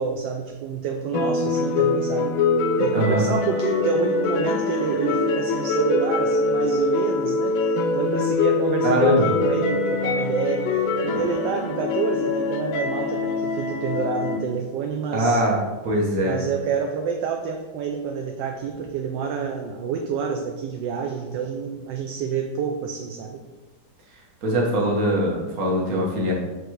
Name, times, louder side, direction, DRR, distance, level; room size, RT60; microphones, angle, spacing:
voice 1, 0.0-2.4 2.8-10.6 11.0-15.4 16.2-23.4, right 6 dB, 75° right, 3 dB, 1.2 m, -28 dB
sound 1, 1.1-14.4, left 3 dB, 80° left, 1.4 m, -23 dB
voice 2, 2.9-3.2 8.8-9.3 15.1-15.6 15.8-16.4 24.4-26.3, right 1 dB, 50° right, -2 dB, 1.6 m, -22 dB
6.0 x 3.3 x 4.6 m, 1.2 s
omnidirectional pair, 2.1 m